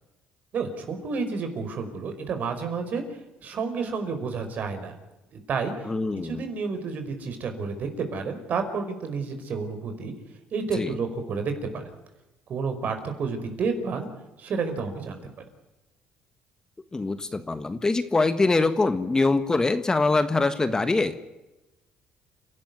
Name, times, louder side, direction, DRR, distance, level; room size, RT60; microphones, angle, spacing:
voice 1, 0.5-3.0 3.4-4.9 5.3-5.7 6.2-10.1 10.5-11.8 12.5-14.1 14.4-15.2, right 5 dB, 55° right, 7 dB, 5.1 m, -30 dB
voice 2, 5.9-6.4 10.7-10.9 16.9-21.2, left 3 dB, 20° left, 11 dB, 1.4 m, -23 dB
29.5 x 12.5 x 9.5 m, 1.0 s
cardioid pair, 105°, 3 cm